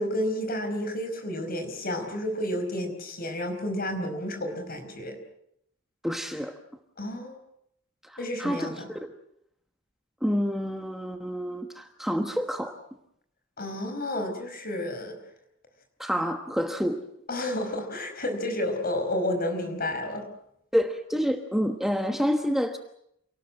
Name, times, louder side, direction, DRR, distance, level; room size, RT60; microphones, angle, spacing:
voice 1, 0.0-5.2 7.0-7.4 8.2-8.9 13.6-15.2 17.3-20.2, left 1 dB, 50° left, 5 dB, 4.9 m, -31 dB
voice 2, 6.0-6.6 8.0-9.1 10.2-12.8 16.0-17.0 20.7-22.8, equal, ahead, 5 dB, 1.2 m, -28 dB
28.0 x 18.5 x 7.6 m, 0.73 s
head